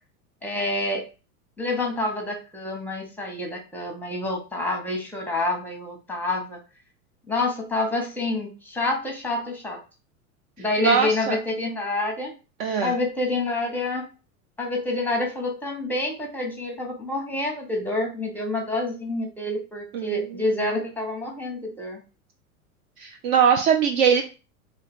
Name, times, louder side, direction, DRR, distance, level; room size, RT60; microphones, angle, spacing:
voice 1, 0.4-1.0 1.6-6.6 7.3-9.8 10.6-12.3 12.8-14.0 14.6-22.0, left 2 dB, 5° left, 1 dB, 0.9 m, -28 dB
voice 2, 10.8-11.4 12.6-12.9 19.9-20.1 23.0-24.2, right 7 dB, 45° right, 5 dB, 0.4 m, -21 dB
2.9 x 2.2 x 3.4 m, 0.32 s
hypercardioid pair, 95°, 45 cm